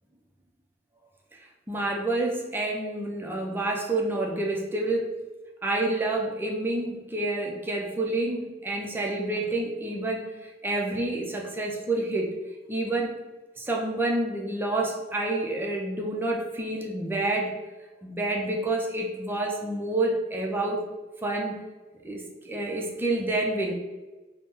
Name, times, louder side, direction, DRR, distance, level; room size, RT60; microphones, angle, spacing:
voice 1, 1.7-5.1 5.6-12.3 12.7-13.2 13.6-17.5 18.0-20.9 21.2-21.6 22.0-23.7, right 2 dB, 10° right, 0 dB, 0.4 m, -28 dB
2.6 x 2.0 x 3.5 m, 1.2 s
head